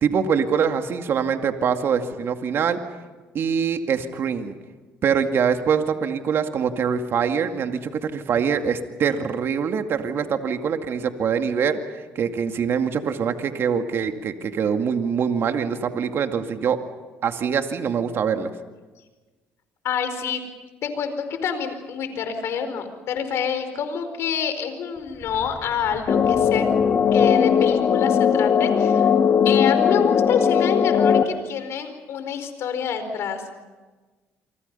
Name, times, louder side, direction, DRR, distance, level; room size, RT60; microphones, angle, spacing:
voice 1, 0.0-2.8 3.3-4.5 5.0-16.8 17.2-18.5, right 7 dB, 55° right, 6 dB, 2.2 m, -24 dB
voice 2, 19.8-20.4 20.8-26.7 27.1-29.1 29.4-33.5, left 7 dB, 65° left, 9 dB, 4.7 m, -27 dB
sound 1, 25.0-27.8, right 2 dB, 25° right, 6.1 m, -42 dB
sound 2, 26.1-31.2, left 7 dB, 50° left, 2.1 m, -18 dB
28.5 x 25.0 x 5.6 m, 1.3 s
supercardioid pair, 75°, 5 cm